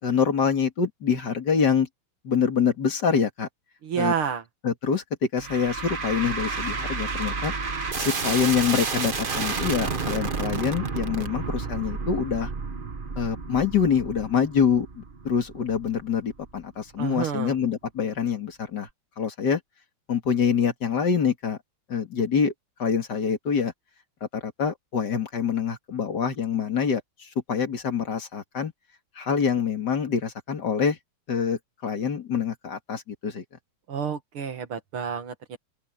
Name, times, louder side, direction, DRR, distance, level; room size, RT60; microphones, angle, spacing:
voice 1, 0.0-1.9 2.2-3.5 4.0-4.1 4.6-5.0 5.3-7.5 8.0-12.5 13.2-18.9 19.2-19.6 20.1-21.6 21.9-22.5 22.8-23.7 24.3-28.7 29.2-31.0 31.3-33.4, left 6 dB, 50° left, 2.8 m, -25 dB
voice 2, 3.8-4.4 17.0-17.6 33.9-35.6, right 7 dB, 80° right, 2.7 m, -29 dB
sound 1, 5.4-16.6, right 4 dB, 30° right, 1.1 m, -31 dB
open air
omnidirectional pair, 2.3 m